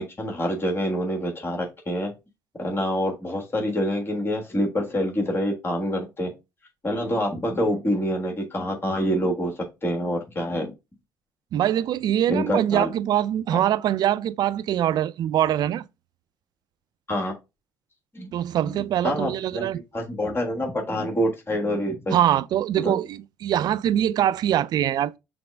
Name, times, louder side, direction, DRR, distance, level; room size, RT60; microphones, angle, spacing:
voice 1, 0.0-2.1 2.6-6.3 6.8-9.5 9.8-10.7 12.3-12.9 13.5-13.6 17.1-17.3 18.1-18.3 18.7-22.2 22.8-23.0, equal, 30° left, 1.4 m, -26 dB
voice 2, 11.5-15.9 18.3-19.8 22.1-25.1, right 11 dB, 55° right, 0.3 m, -23 dB
6.0 x 2.0 x 3.4 m
hypercardioid pair, 60°, 8 cm